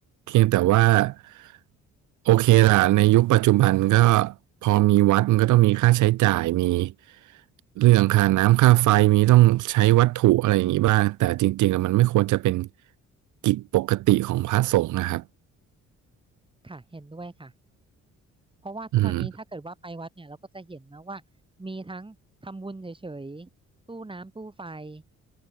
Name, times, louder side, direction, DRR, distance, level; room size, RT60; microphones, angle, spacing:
voice 1, 0.3-1.5 2.2-4.3 4.6-6.9 7.8-12.7 13.4-15.2 18.9-19.3, right 17 dB, 80° right, 0.7 m, -19 dB
voice 2, 16.6-17.5 18.6-21.2 21.6-22.2 22.4-23.5 23.9-25.0, right 2 dB, 15° right, 5.4 m, -39 dB
cardioid pair, 90°, 30 cm